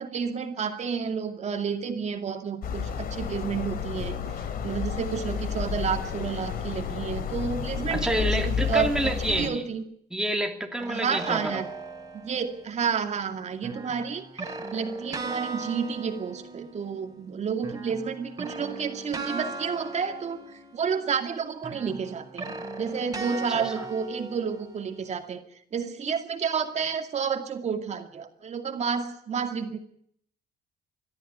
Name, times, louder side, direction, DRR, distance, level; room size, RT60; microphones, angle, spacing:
voice 1, 0.0-4.2 4.6-9.8 10.9-11.7 12.2-25.4 25.7-29.8, right 6 dB, 40° right, 6 dB, 2.3 m, -30 dB
sound 1, 2.6-9.5, left 7 dB, 60° left, 2.7 m, -31 dB
voice 2, 7.9-9.6 10.1-11.6 23.5-23.8, right 1 dB, 5° right, 3 dB, 2.7 m, -28 dB
sound 2, 10.8-12.7 13.6-17.3 17.6-21.2 21.6-25.1, right 3 dB, 20° right, 3.5 m, -38 dB
22.0 x 13.0 x 9.3 m, 0.68 s
cardioid pair, 110°, 17 cm